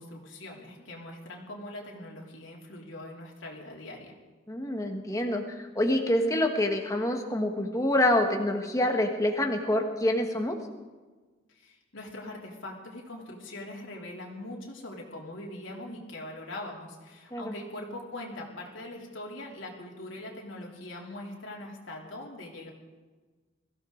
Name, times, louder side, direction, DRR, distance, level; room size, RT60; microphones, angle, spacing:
voice 1, 0.0-4.1 11.5-22.7, left 1 dB, 85° left, -2 dB, 3.2 m, -42 dB
voice 2, 4.5-10.6 17.3-17.5, left 1 dB, 15° left, 3 dB, 1.5 m, -26 dB
22.0 x 15.0 x 3.9 m, 1.3 s
head